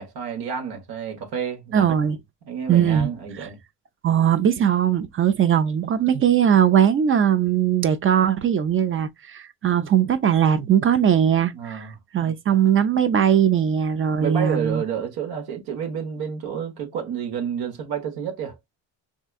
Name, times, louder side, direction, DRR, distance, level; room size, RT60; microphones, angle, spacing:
voice 1, 0.0-1.9 2.4-3.6 11.5-11.9 14.2-18.6, right 8 dB, 80° right, 1.2 m, -30 dB
voice 2, 1.7-2.2 2.7-3.1 3.4-3.5 4.0-14.8, right 9 dB, 35° right, 0.4 m, -20 dB
3.3 x 2.7 x 2.3 m
cardioid pair, 95°, 37 cm